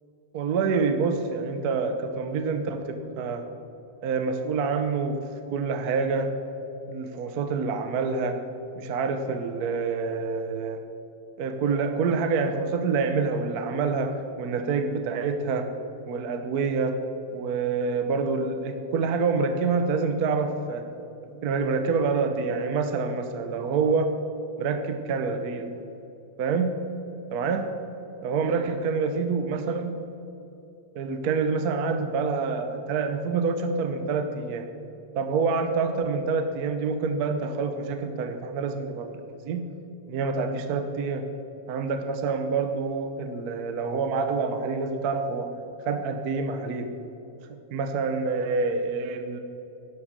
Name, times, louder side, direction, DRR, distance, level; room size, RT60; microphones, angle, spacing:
voice 1, 0.3-3.4 4.0-5.2 5.5-6.3 6.9-8.4 8.8-10.8 11.4-15.7 16.1-17.0 17.3-20.8 21.4-24.1 24.6-25.7 26.4-26.7 27.3-27.6 28.2-29.9 30.9-34.7 35.2-39.2 39.4-39.6 40.1-41.2 41.7-45.5 45.9-46.9 47.7-49.4, right 4 dB, 65° right, 7 dB, 1.3 m, -27 dB
11.5 x 11.0 x 7.4 m, 2.9 s
omnidirectional pair, 1.9 m